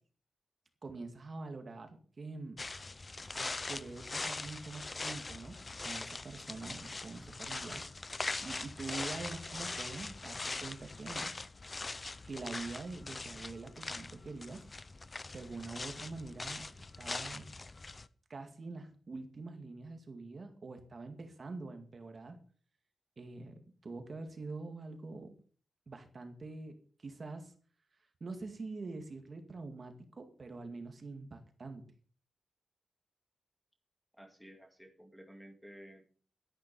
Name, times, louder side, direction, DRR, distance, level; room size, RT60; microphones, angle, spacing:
voice 1, 0.8-2.6 3.3-5.6 5.8-7.8 8.1-11.3 12.3-14.6 15.3-17.5 18.3-22.4 23.2-25.4 25.9-27.5 28.2-31.8, right 3 dB, 35° right, 6 dB, 2.1 m, -45 dB
sound 1, 2.6-18.1, left 3 dB, 25° left, 0.6 m, -42 dB
voice 2, 34.1-36.0, equal, ahead, 5 dB, 2.1 m, -53 dB
12.5 x 11.0 x 5.4 m, 0.41 s
wide cardioid pair, 180°, 0 cm